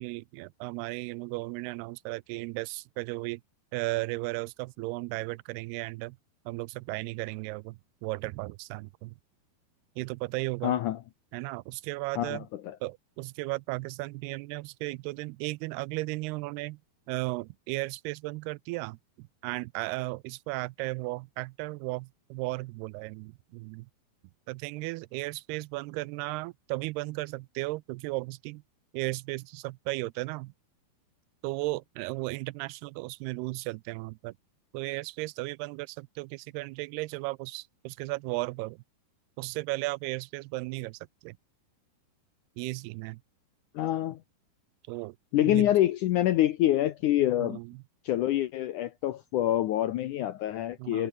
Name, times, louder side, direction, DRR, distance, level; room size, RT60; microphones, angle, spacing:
voice 1, 0.0-3.4 3.7-6.2 6.5-9.2 10.0-10.8 11.3-12.5 12.8-16.8 17.1-23.9 24.5-28.6 28.9-30.5 31.4-34.3 34.7-38.8 39.4-41.4 42.6-43.2 44.9-45.2 45.4-45.7 47.4-47.8 50.8-51.1, right 22 dB, 85° right, 2.5 m, -35 dB
voice 2, 10.6-11.0 12.2-12.8 43.7-44.2 45.3-47.6 48.1-51.1, left 13 dB, 75° left, 1.9 m, -26 dB
omnidirectional pair, 4.6 m